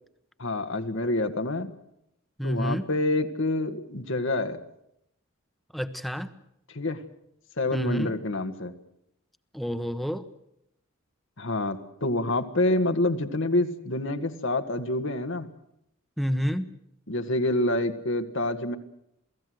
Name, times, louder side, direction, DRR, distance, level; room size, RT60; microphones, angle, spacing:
voice 1, 0.4-1.7 2.4-4.6 6.7-7.0 7.6-8.7 11.4-15.5 17.1-18.8, left 2 dB, 60° left, 7 dB, 1.8 m, -27 dB
voice 2, 2.4-2.9 5.7-6.3 7.7-8.1 9.5-10.3 16.2-16.7, equal, ahead, 10 dB, 1.2 m, -29 dB
28.0 x 17.5 x 7.9 m, 0.79 s
head